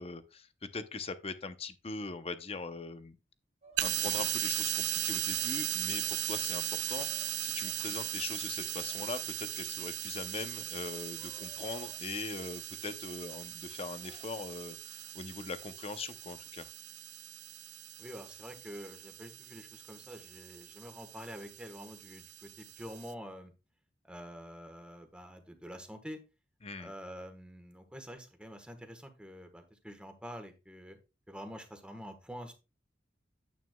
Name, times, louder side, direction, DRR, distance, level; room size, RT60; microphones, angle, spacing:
voice 1, 0.0-3.2 3.8-16.7 26.6-26.9, left 3 dB, 35° left, 0.7 m, -41 dB
sound 1, 3.6-9.6 10.1-12.6 13.1-14.3, right 3 dB, 35° right, 1.1 m, -61 dB
sound 2, 3.8-23.1, right 14 dB, 65° right, 0.4 m, -38 dB
voice 2, 18.0-23.5 24.0-26.2 26.8-31.0 31.3-32.5, equal, 5° right, 1.4 m, -47 dB
9.2 x 9.1 x 2.3 m
head